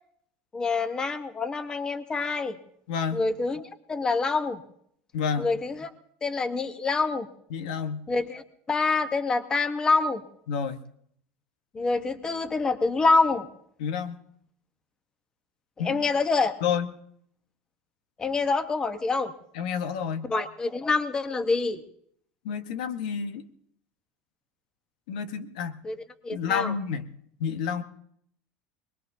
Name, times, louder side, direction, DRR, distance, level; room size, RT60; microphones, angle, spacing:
voice 1, 0.5-2.6 3.1-4.6 5.4-5.9 6.2-7.3 8.1-10.2 11.7-13.5 15.8-16.5 18.2-19.3 20.3-21.8 25.8-26.0 26.2-26.7, left 3 dB, 20° left, 10 dB, 1.0 m, -26 dB
voice 2, 2.9-3.2 5.1-5.5 7.5-8.0 10.5-10.8 13.8-14.2 15.8-16.0 16.6-16.9 19.5-20.3 22.4-23.4 25.1-25.8 26.3-27.0 27.4-27.8, left 7 dB, 90° left, 10 dB, 1.1 m, -29 dB
24.5 x 20.5 x 2.7 m, 0.69 s
supercardioid pair, 145°, 4 cm